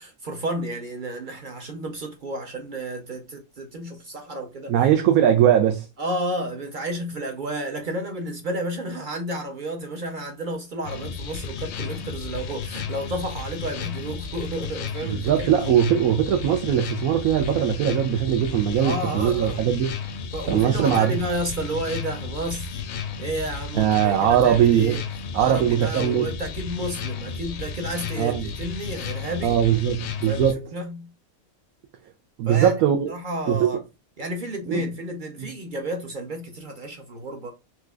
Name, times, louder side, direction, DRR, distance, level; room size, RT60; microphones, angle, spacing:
voice 1, 0.0-4.7 6.0-15.5 18.8-19.7 20.3-22.8 23.2-25.0 25.3-29.6 30.3-31.1 32.5-32.8 33.1-33.8 34.2-37.5, right 1 dB, 50° right, 0.6 m, -31 dB
voice 2, 4.7-5.9 15.1-20.0 20.5-21.2 23.7-25.0 25.3-26.3 28.2-28.5 29.4-30.7 32.4-33.1 33.5-33.8 34.7-34.8 35.4-35.5, right 10 dB, 80° right, 1.0 m, -20 dB
sound 1, 10.8-30.5, left 6 dB, 65° left, 0.7 m, -33 dB
4.1 x 2.4 x 2.3 m
omnidirectional pair, 1.5 m